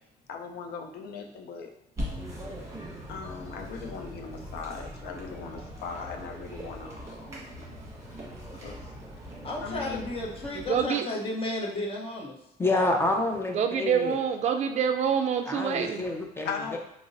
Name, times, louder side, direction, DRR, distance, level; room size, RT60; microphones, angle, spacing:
voice 1, 0.3-1.7 3.1-7.5 8.6-8.8 9.6-10.0 16.5-16.8, left 5 dB, 65° left, 4 dB, 0.6 m, -39 dB
sound 1, 2.0-10.9, equal, 20° right, 1.2 m, -41 dB
voice 2, 9.4-12.3, left 2 dB, 35° left, -2 dB, 0.8 m, -33 dB
voice 3, 10.6-11.1 13.5-16.1, right 7 dB, 45° right, 6 dB, 0.4 m, -26 dB
voice 4, 12.6-14.2 15.5-16.8, left 2 dB, 15° left, 2 dB, 0.5 m, -28 dB
4.9 x 2.0 x 2.5 m, 0.85 s
cardioid pair, 110°, 17 cm